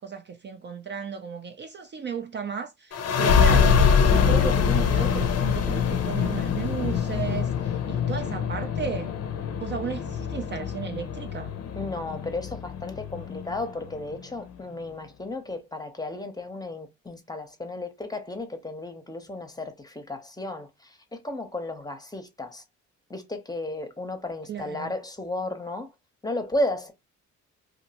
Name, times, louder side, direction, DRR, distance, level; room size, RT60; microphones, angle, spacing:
voice 1, 0.0-3.8 4.1-9.1 9.5-11.5 24.5-24.9, right 6 dB, 35° right, 0.4 m, -34 dB
sound 1, 2.9-14.2, left 7 dB, 55° left, 0.6 m, -24 dB
voice 2, 11.8-22.6 23.1-25.9 26.2-26.9, left 2 dB, 15° left, 0.7 m, -33 dB
2.9 x 2.6 x 2.8 m
cardioid pair, 90°, 30 cm